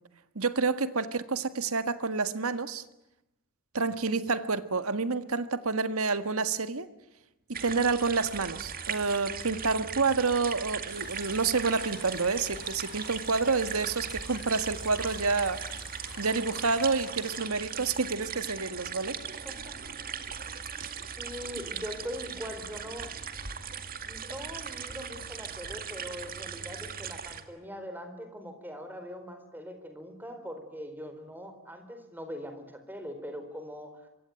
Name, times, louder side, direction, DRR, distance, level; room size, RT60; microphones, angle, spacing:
voice 1, 0.4-2.8 3.7-6.9 7.6-15.6 16.2-19.2 20.8-20.9, right 4 dB, 80° right, 11 dB, 1.7 m, -28 dB
sound 1, 7.5-27.4, right 7 dB, 45° right, 2.1 m, -39 dB
sound 2, 10.9-17.4, left 5 dB, 55° left, 4.7 m, -49 dB
voice 2, 19.4-19.8 21.2-23.2 24.1-34.1, equal, 10° right, 7 dB, 4.1 m, -41 dB
26.5 x 24.0 x 9.3 m, 0.88 s
head